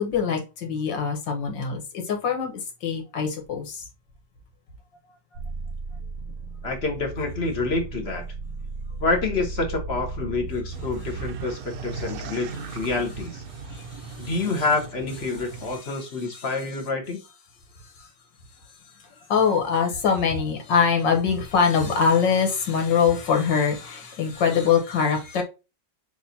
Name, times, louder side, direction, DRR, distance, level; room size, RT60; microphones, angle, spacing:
voice 1, 0.0-3.9 13.6-14.6 15.7-16.0 16.3-16.5 18.0-18.1 19.3-25.4, left 6 dB, 90° left, 1.8 m, -24 dB
sound 1, 5.3-11.3, right 3 dB, 85° right, 1.5 m, -35 dB
voice 2, 6.6-8.2 9.0-13.4 14.2-17.2, left 3 dB, 45° left, 1.0 m, -27 dB
sound 2, 10.7-15.8, right 4 dB, 65° right, 1.0 m, -37 dB
6.8 x 2.6 x 2.7 m
omnidirectional pair, 1.9 m